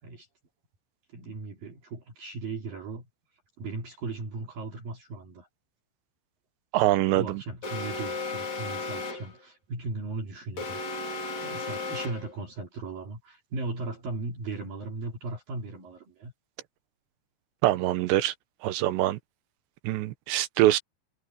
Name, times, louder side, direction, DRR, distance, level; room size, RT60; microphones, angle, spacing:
voice 1, 1.1-3.1 3.6-5.5 7.2-10.8 11.4-16.3, right 3 dB, 50° right, 4.3 m, -37 dB
voice 2, 6.7-7.4 17.6-18.3 18.6-19.2 19.8-20.8, right 15 dB, 75° right, 2.8 m, -24 dB
Alarm, 7.6-9.4 10.6-12.4, left 3 dB, 40° left, 4.4 m, -34 dB
omnidirectional pair, 5.6 m